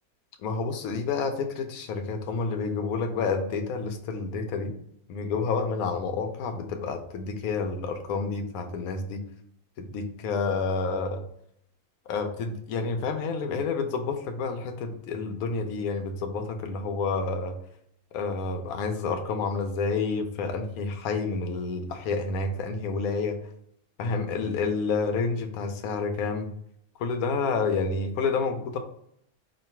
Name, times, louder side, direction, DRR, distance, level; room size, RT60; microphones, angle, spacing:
voice 1, 0.4-4.7 5.1-9.2 9.8-11.2 12.1-17.6 18.1-23.4 24.0-26.5 27.0-28.8, left 4 dB, 75° left, 6 dB, 1.0 m, -29 dB
3.1 x 2.5 x 4.2 m, 0.73 s
omnidirectional pair, 1.6 m